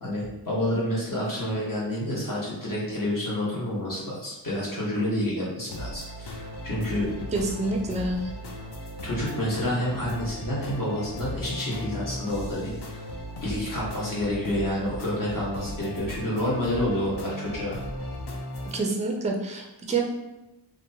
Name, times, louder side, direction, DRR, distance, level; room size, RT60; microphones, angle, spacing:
voice 1, 0.0-6.4 6.6-7.1 9.0-13.0 13.4-17.8, left 1 dB, 45° left, -6 dB, 1.2 m, -29 dB
sound 1, 5.7-18.8, left 1 dB, 60° left, 0.5 m, -37 dB
voice 2, 7.3-8.4 18.7-20.1, right 3 dB, 15° right, 1 dB, 0.4 m, -27 dB
2.8 x 2.2 x 2.7 m, 0.97 s
wide cardioid pair, 75°, 44 cm